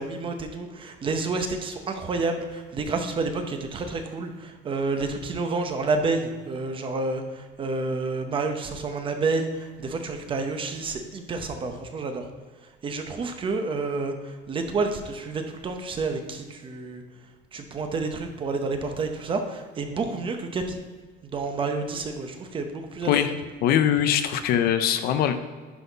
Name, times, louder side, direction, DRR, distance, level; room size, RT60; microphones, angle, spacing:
voice 1, 0.0-12.3 12.8-17.0 17.5-20.8 21.2-23.3, right 3 dB, 30° right, 5 dB, 0.8 m, -29 dB
voice 2, 23.6-25.3, left 10 dB, 55° left, 9 dB, 0.6 m, -22 dB
10.5 x 4.2 x 4.0 m, 1.5 s
cardioid pair, 150°, 19 cm